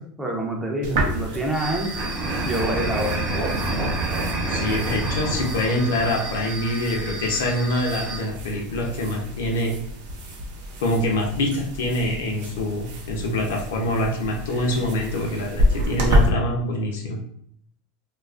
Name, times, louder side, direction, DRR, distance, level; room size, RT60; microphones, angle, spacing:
voice 1, 0.2-1.9 2.4-3.3, right 1 dB, 10° right, 0 dB, 0.4 m, -27 dB
sound 1, 0.8-16.3, equal, 75° right, 0.5 m, -29 dB
sound 2, 1.5-8.2, right 2 dB, 40° right, 0.7 m, -28 dB
voice 2, 4.5-9.7 10.8-17.2, left 1 dB, 85° left, 0 dB, 0.6 m, -25 dB
2.3 x 2.3 x 2.4 m, 0.65 s
supercardioid pair, 135°, 0 cm